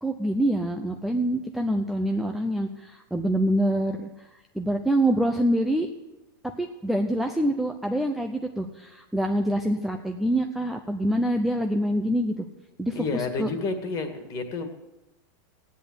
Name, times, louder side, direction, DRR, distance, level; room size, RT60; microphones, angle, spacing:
voice 1, 0.0-4.1 4.5-5.9 6.6-12.5 12.8-13.5, right 1 dB, ahead, 3 dB, 0.6 m, -25 dB
voice 2, 12.9-14.7, left 3 dB, 30° left, 7 dB, 2.0 m, -30 dB
15.5 x 10.5 x 8.0 m, 1.0 s
supercardioid pair, 155°, 12 cm